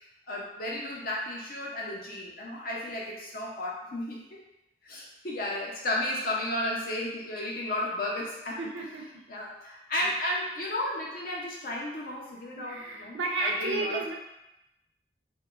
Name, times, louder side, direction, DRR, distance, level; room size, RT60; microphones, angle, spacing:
voice 1, 0.3-4.2 4.8-8.9 9.3-14.1, left 1 dB, 50° left, -3 dB, 0.6 m, -33 dB
voice 2, 8.6-9.2 12.6-14.1, right 3 dB, 85° right, 1 dB, 0.4 m, -32 dB
2.8 x 2.2 x 2.4 m, 0.90 s
head